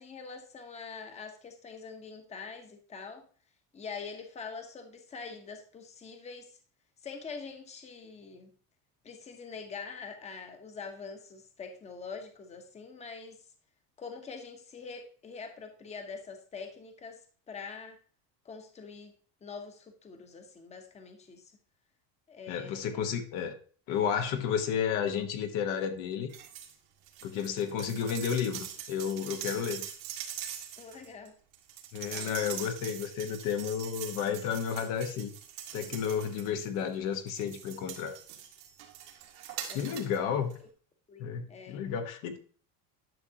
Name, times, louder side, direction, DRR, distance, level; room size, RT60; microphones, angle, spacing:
voice 1, 0.0-3.3 3.7-6.6 7.0-8.5 9.0-13.4 14.0-18.0 18.4-19.1 19.4-21.5 22.3-23.0 30.8-31.4 32.0-32.3 39.7-40.3 41.1-41.9, left 5 dB, 20° left, 1.1 m, -44 dB
voice 2, 22.5-23.6 23.9-26.3 27.2-29.9 31.9-35.3 35.7-38.2 39.7-40.5 41.2-42.4, left 7 dB, 65° left, 1.3 m, -32 dB
sound 1, 26.3-26.7 27.0-36.8 37.3-40.2 40.5-40.6, right 10 dB, 75° right, 1.9 m, -43 dB
11.0 x 6.4 x 2.9 m
cardioid pair, 155°, 35 cm